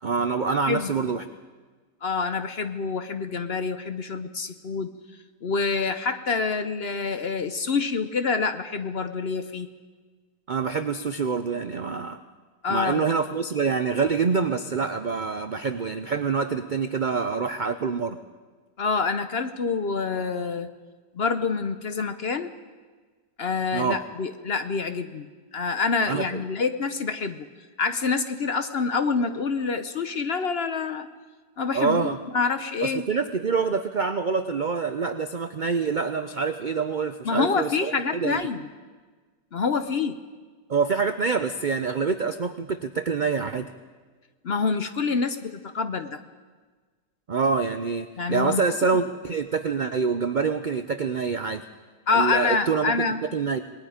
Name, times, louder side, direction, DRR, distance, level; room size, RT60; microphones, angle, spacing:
voice 1, 0.0-1.3 10.5-12.2 12.7-18.2 23.7-24.0 26.1-26.3 31.7-32.2 32.8-38.4 40.7-43.7 47.3-51.6 52.1-53.6, right 5 dB, 85° right, 9 dB, 0.4 m, -26 dB
voice 2, 0.7-1.1 2.0-4.9 5.4-9.7 12.6-13.1 18.8-20.7 21.1-22.5 23.4-25.3 25.5-27.5 27.8-31.1 31.6-32.1 32.3-33.0 37.2-38.7 39.5-40.2 44.4-46.2 48.2-48.6 52.1-53.2, left 4 dB, 50° left, 9 dB, 0.8 m, -26 dB
27.0 x 19.5 x 5.0 m, 1.4 s
omnidirectional pair, 1.7 m